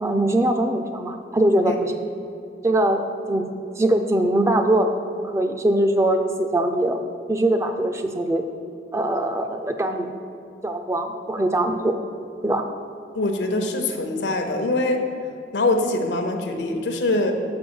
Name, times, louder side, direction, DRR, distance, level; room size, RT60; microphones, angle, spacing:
voice 1, 0.0-2.0 2.6-3.5 3.8-7.0 7.3-8.4 8.9-10.1 10.6-12.0 12.4-12.7, right 1 dB, 15° right, 5 dB, 0.4 m, -22 dB
voice 2, 13.1-15.0 15.5-17.3, left 2 dB, 90° left, 5 dB, 0.8 m, -23 dB
6.1 x 5.0 x 6.2 m, 2.5 s
head